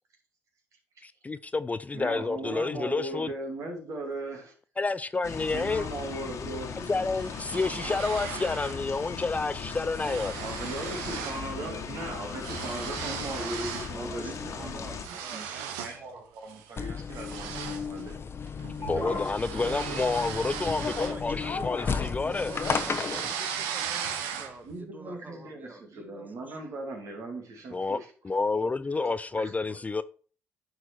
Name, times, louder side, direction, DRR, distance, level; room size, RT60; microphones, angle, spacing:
voice 1, 1.0-3.3 4.8-5.8 6.9-10.3 18.9-22.5 27.7-28.0 28.2-30.0, left 3 dB, 25° left, 0.4 m, -29 dB
voice 2, 1.9-4.5 5.5-6.9 9.7-9.8 10.4-18.2 18.8-19.7 24.6-28.1 29.4-29.5, right 2 dB, 60° right, 2.5 m, -38 dB
sound 1, 5.2-15.1, left 6 dB, 60° left, 1.5 m, -38 dB
sound 2, 7.2-8.8 9.2-9.4 9.7-11.5 11.8-14.0 14.4-16.0 16.5-16.7 17.1-21.7 22.0-24.7, right 8 dB, 85° right, 0.8 m, -37 dB
voice 3, 13.9-15.7 21.0-26.8 28.5-30.0, right 2 dB, 30° right, 1.6 m, -47 dB
sound 3, 16.8-23.3, left 5 dB, 45° left, 0.9 m, -33 dB
9.5 x 4.6 x 4.5 m
hypercardioid pair, 50°, 6 cm